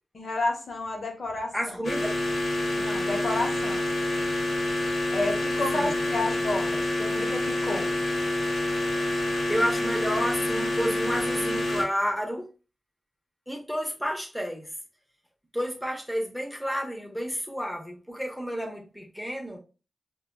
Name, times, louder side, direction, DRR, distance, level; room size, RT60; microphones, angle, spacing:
voice 1, 0.1-1.8 2.8-3.9 5.1-7.9, left 2 dB, 60° left, 0.9 m, -31 dB
voice 2, 1.5-2.2 5.7-6.0 9.5-12.5 13.5-14.7 15.5-19.6, equal, ahead, 0.7 m, -30 dB
sound 1, 1.8-11.8, left 1 dB, 85° left, 0.9 m, -27 dB
4.8 x 2.2 x 2.2 m
wide cardioid pair, 110°, 0 cm